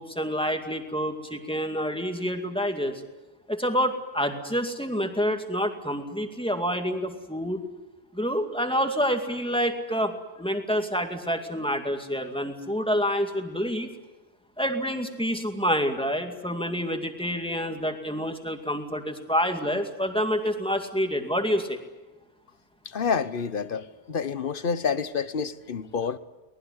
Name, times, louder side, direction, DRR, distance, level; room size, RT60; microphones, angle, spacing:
voice 1, 0.0-3.0 3.5-7.7 8.1-13.9 14.6-21.8, equal, 5° left, 2.3 m, -28 dB
voice 2, 22.8-26.2, left 6 dB, 55° left, 1.2 m, -28 dB
24.0 x 19.5 x 9.7 m
omnidirectional pair, 1.1 m